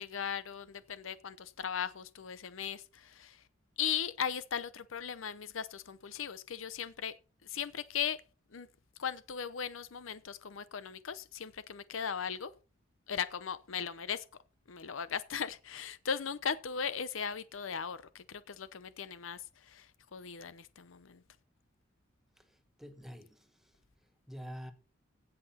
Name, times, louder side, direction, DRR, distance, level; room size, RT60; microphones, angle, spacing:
voice 1, 0.0-3.4 3.8-7.1 7.4-8.2 8.5-8.7 9.0-12.5 13.1-14.2 14.7-21.2, left 7 dB, 80° left, 0.7 m, -38 dB
voice 2, 22.4-23.8 24.3-24.7, equal, ahead, 1.4 m, -47 dB
16.5 x 5.9 x 4.3 m
head